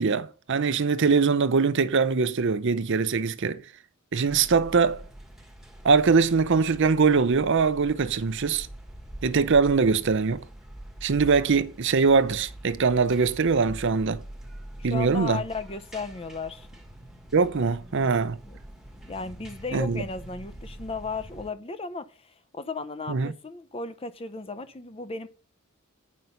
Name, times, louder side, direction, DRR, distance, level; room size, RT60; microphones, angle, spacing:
voice 1, 0.0-3.6 4.1-5.0 5.8-8.7 9.2-10.4 11.0-14.2 14.8-15.4 17.3-18.4 19.7-20.0 23.1-23.3, right 5 dB, 55° right, 0.6 m, -22 dB
sound 1, 4.3-21.5, right 1 dB, ahead, 1.2 m, -44 dB
voice 2, 14.8-16.7 17.8-18.1 18.5-18.6 19.1-25.3, left 3 dB, 25° left, 0.6 m, -35 dB
9.4 x 5.4 x 5.7 m
head